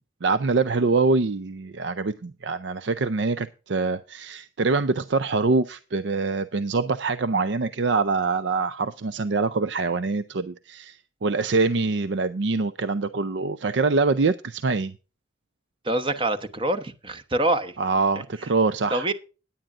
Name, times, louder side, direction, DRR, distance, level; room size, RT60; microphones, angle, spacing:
voice 1, 0.0-14.9 17.8-19.1, right 3 dB, 65° right, 13 dB, 0.5 m, -24 dB
voice 2, 15.8-17.7 18.9-19.1, right 2 dB, 25° right, 10 dB, 1.0 m, -25 dB
16.5 x 10.0 x 2.5 m, 0.33 s
head